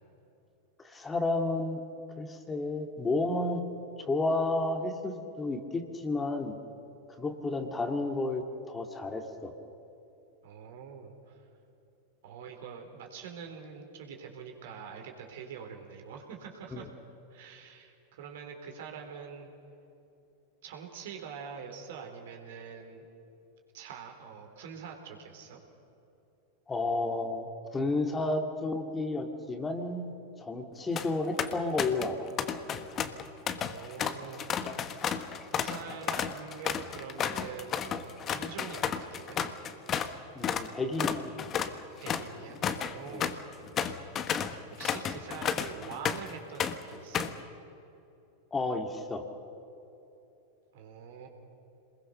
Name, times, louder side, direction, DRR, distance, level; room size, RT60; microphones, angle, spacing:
voice 1, 0.8-1.8 2.2-3.6 4.0-6.6 7.2-8.4 8.7-9.5 16.7-16.8 26.7-27.5 27.7-32.3 40.3-41.3 43.1-43.2 48.5-49.2, left 2 dB, 15° left, 5 dB, 2.2 m, -31 dB
voice 2, 10.4-11.3 12.2-16.9 17.3-19.5 20.6-23.0 23.7-25.6 33.6-34.5 35.5-39.4 42.0-43.4 44.8-47.3 50.7-51.3, right 6 dB, 65° right, 3 dB, 4.0 m, -44 dB
sound 1, 30.7-31.1 31.4-32.1 32.4-40.1 40.4-40.7 41.0-46.3 46.6-47.4, left 8 dB, 35° left, 1.3 m, -32 dB
27.5 x 21.0 x 6.6 m, 2.9 s
hypercardioid pair, 95°, 0 cm